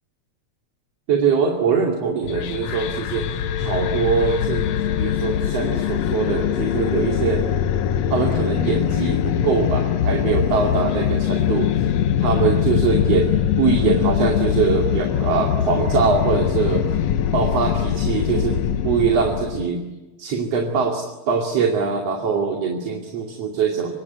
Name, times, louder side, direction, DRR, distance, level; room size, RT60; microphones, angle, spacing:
voice 1, 1.1-3.3 3.6-4.7 5.0-7.5 8.1-11.9 12.2-16.9 17.3-19.8 20.2-23.9, right 5 dB, 60° right, 2 dB, 3.6 m, -22 dB
sound 1, 2.2-19.7, left 9 dB, 70° left, 2.1 m, -22 dB
25.5 x 24.5 x 9.5 m, 1.1 s
omnidirectional pair, 3.3 m